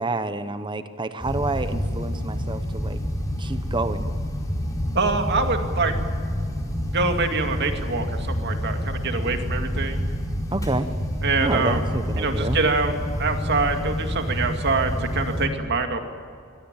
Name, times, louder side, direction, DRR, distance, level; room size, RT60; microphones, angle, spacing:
voice 1, 0.0-3.0 3.4-4.1 10.5-10.9 11.4-12.6, right 2 dB, 25° right, 11 dB, 1.0 m, -28 dB
sound 1, 1.2-15.5, equal, 15° left, 4.7 m, -28 dB
voice 2, 4.9-6.0 6.9-10.0 11.2-11.9 12.2-16.0, right 3 dB, 55° right, 6 dB, 2.3 m, -25 dB
sound 2, 5.4-6.0 6.6-9.7 10.0-10.8 11.4-14.5 14.8-15.0, right 1 dB, 75° right, 1.7 m, -42 dB
24.0 x 17.5 x 9.0 m, 2.4 s
head